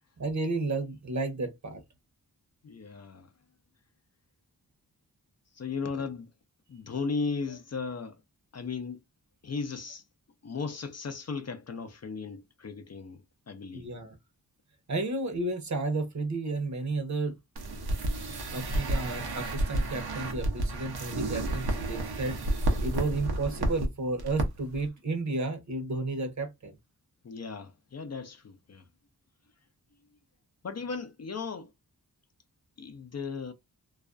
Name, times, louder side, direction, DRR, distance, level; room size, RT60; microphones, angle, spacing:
voice 1, 0.2-1.8 13.7-14.1 14.9-17.4 18.5-22.4 22.8-26.7, right 3 dB, 50° right, 0.8 m, -32 dB
voice 2, 2.6-3.3 5.6-6.3 6.7-8.2 8.5-9.0 9.4-10.0 10.4-13.2 13.5-13.9 27.2-28.8 30.6-31.7 32.8-33.5, left 4 dB, 45° left, 0.5 m, -36 dB
sound 1, 17.6-23.9 24.2-24.5 24.7-24.8, right 1 dB, 90° right, 0.7 m, -30 dB
2.4 x 2.2 x 2.4 m
cardioid pair, 60°, 37 cm